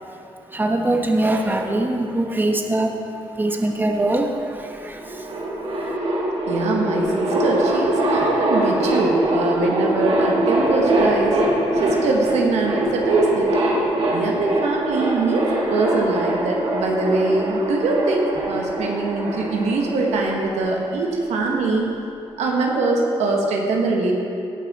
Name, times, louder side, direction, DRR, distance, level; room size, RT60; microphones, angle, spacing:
voice 1, 0.5-3.0 3.4-5.3, right 1 dB, 20° right, 3 dB, 1.1 m, -22 dB
sound 1, 4.6-4.7 4.9-20.8, right 1 dB, 60° right, 2.2 m, -23 dB
voice 2, 6.5-11.4 11.8-13.6 14.1-21.9 22.4-24.1, right 3 dB, 85° right, 0 dB, 1.3 m, -22 dB
17.0 x 5.8 x 4.1 m, 2.7 s
cardioid pair, 65°, 11 cm